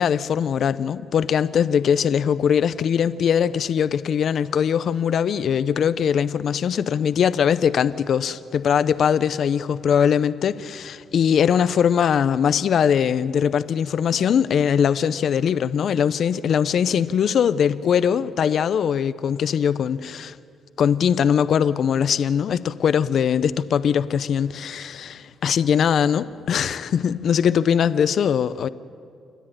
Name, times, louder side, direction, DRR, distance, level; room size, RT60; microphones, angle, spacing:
voice 1, 0.0-20.4 20.8-28.7, left 8 dB, 60° left, 15 dB, 0.5 m, -21 dB
29.0 x 10.0 x 8.8 m, 2.3 s
cardioid pair, 90°, 0 cm